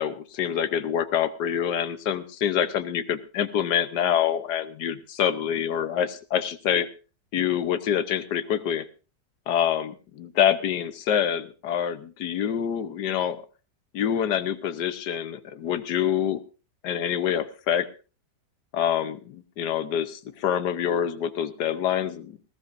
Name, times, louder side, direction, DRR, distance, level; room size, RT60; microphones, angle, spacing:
voice 1, 0.0-6.9 7.3-8.8 9.5-13.4 13.9-16.4 16.8-17.9 18.7-22.4, left 9 dB, 75° left, 11 dB, 1.5 m, -26 dB
20.0 x 15.5 x 2.6 m, 0.34 s
omnidirectional pair, 1.8 m